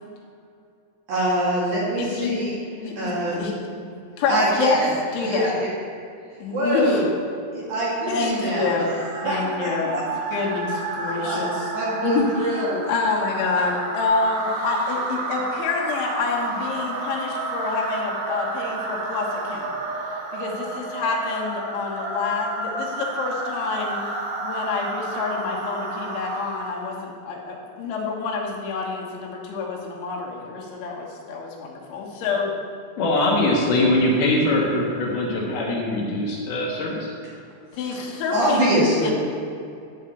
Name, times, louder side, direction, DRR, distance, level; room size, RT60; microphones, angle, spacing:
voice 1, 1.1-2.6 3.0-3.4 4.3-4.9 5.2-5.7 6.5-7.0 7.5-10.3 11.2-11.4 11.7-12.8 13.5-13.6 37.7-39.1, right 1 dB, 55° right, -6 dB, 2.8 m, -25 dB
voice 2, 2.0-2.4 2.8-3.6 4.2-4.8 5.1-5.5 6.4-7.0 8.1-8.9 9.2-10.0 10.3-11.7 12.0-12.6 12.9-19.7 20.3-24.0 24.4-32.5 37.7-39.1, left 4 dB, 80° left, -1 dB, 3.7 m, -27 dB
banshie scream, 8.0-26.9, right 2 dB, 75° right, 1.7 m, -31 dB
voice 3, 33.0-37.1, left 1 dB, 65° left, -2 dB, 2.8 m, -22 dB
11.5 x 4.8 x 8.2 m, 2.5 s
omnidirectional pair, 5.4 m